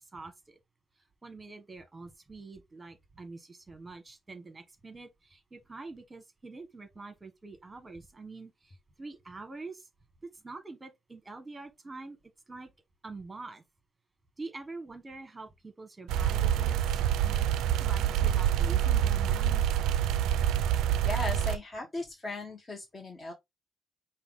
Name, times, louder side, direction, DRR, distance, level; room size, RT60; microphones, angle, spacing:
voice 1, 0.1-0.6 1.2-9.9 10.2-12.2 12.5-12.7 13.0-13.6 14.4-19.6, right 3 dB, 20° right, 1.2 m, -45 dB
sound 1, 16.1-21.6, right 10 dB, 90° right, 0.3 m, -26 dB
voice 2, 21.0-23.3, left 2 dB, 30° left, 1.1 m, -37 dB
5.6 x 2.3 x 3.7 m
cardioid pair, 90°, 0 cm